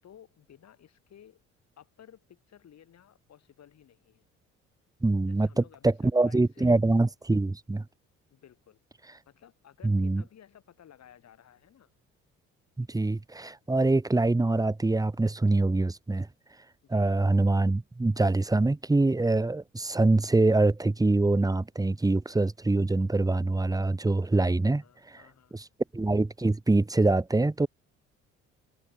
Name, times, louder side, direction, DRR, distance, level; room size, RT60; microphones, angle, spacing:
voice 1, 0.0-1.4 1.8-4.3 5.3-6.8 8.3-8.8 9.3-11.9 13.7-14.0 16.8-17.1 24.7-25.6, left 9 dB, 60° left, 7.6 m, -56 dB
voice 2, 5.0-7.8 9.8-10.2 12.8-16.3 16.9-25.2 25.5-25.6 25.9-27.7, right 2 dB, 10° right, 1.2 m, -24 dB
supercardioid pair, 65°, 31 cm